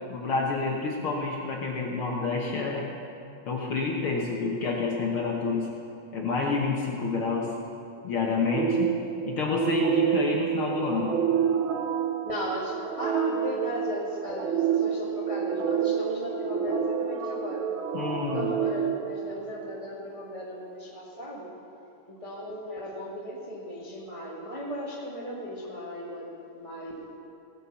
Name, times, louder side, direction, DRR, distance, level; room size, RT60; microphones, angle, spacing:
voice 1, 0.1-2.9 3.4-5.7 6.1-7.5 8.0-8.9 9.3-11.1 17.9-18.5, left 4 dB, 55° left, -1 dB, 1.7 m, -28 dB
sound 1, 8.5-19.8, right 8 dB, 70° right, 1.2 m, -28 dB
voice 2, 12.2-17.7 18.3-21.5 22.1-27.1, equal, 15° right, -4 dB, 1.3 m, -36 dB
17.0 x 9.0 x 7.0 m, 2.7 s
omnidirectional pair, 3.3 m